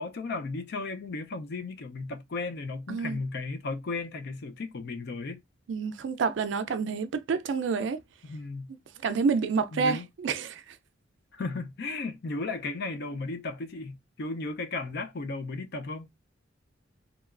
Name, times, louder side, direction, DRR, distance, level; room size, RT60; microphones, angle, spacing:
voice 1, 0.0-5.4 8.2-8.7 9.7-10.1 11.3-16.1, left 3 dB, 60° left, 0.5 m, -35 dB
voice 2, 5.7-8.0 8.7-8.8 9.0-10.8, right 5 dB, 70° right, 0.4 m, -28 dB
2.8 x 2.3 x 2.4 m
head